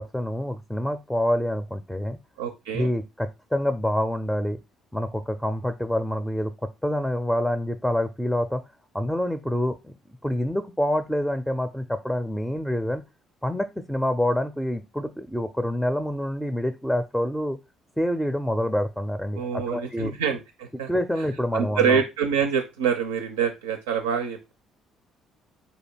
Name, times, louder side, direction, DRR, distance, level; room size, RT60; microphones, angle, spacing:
voice 1, 0.0-2.2 2.7-4.6 4.9-6.5 6.8-8.6 8.9-9.9 10.2-13.0 13.4-17.6 18.0-20.1 20.9-22.0, left 1 dB, 5° left, 8 dB, 0.5 m, -27 dB
voice 2, 2.4-2.9 19.3-20.9 21.5-24.5, right 7 dB, 75° right, 5 dB, 0.4 m, -26 dB
4.0 x 2.8 x 4.3 m, 0.25 s
figure-of-eight pair, 50°, 0 cm